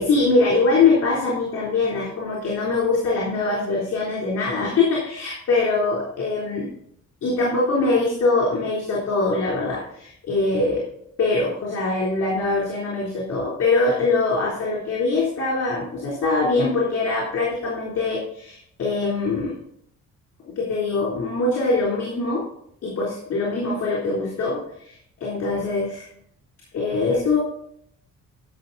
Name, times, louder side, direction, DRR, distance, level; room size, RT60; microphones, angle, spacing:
voice 1, 0.0-6.7 7.2-10.8 11.2-19.6 20.5-22.4 22.8-26.1 26.7-27.4, left 3 dB, 55° left, -4 dB, 3.5 m, -23 dB
12.0 x 6.1 x 4.1 m, 0.68 s
cardioid pair, 90°, 30 cm